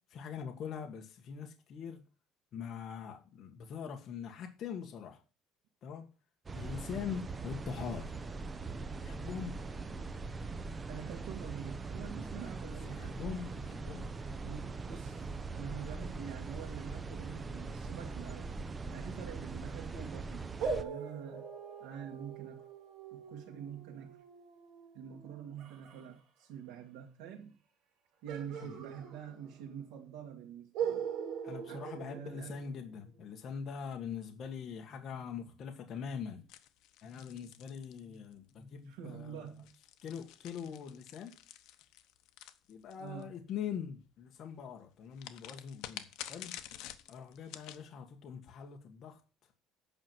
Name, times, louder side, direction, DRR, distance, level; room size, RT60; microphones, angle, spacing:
voice 1, 0.1-2.0 2.5-5.2 5.8-6.1 6.5-8.1 9.0-9.6 12.4-12.5 12.8-14.1 28.5-28.8 31.4-36.4 37.0-39.5 40.0-41.3 42.7-46.6 47.1-49.5, left 7 dB, 40° left, 1.5 m, -43 dB
sound 1, 6.5-20.8, right 4 dB, 20° right, 0.7 m, -41 dB
voice 2, 10.9-13.2 14.4-18.5 18.9-20.5 20.7-21.4 21.8-22.6 23.1-24.2 24.9-27.6 28.2-31.1 31.7-32.5 38.9-39.7 43.0-43.3, right 8 dB, 90° right, 1.8 m, -46 dB
sound 2, 20.6-26.0 28.3-29.7 30.0-30.1 30.7-32.9, right 7 dB, 65° right, 3.3 m, -41 dB
sound 3, 36.5-38.5 39.5-43.2 45.2-47.8, left 13 dB, 65° left, 1.0 m, -49 dB
8.7 x 5.9 x 7.8 m
cardioid pair, 165°, 0 cm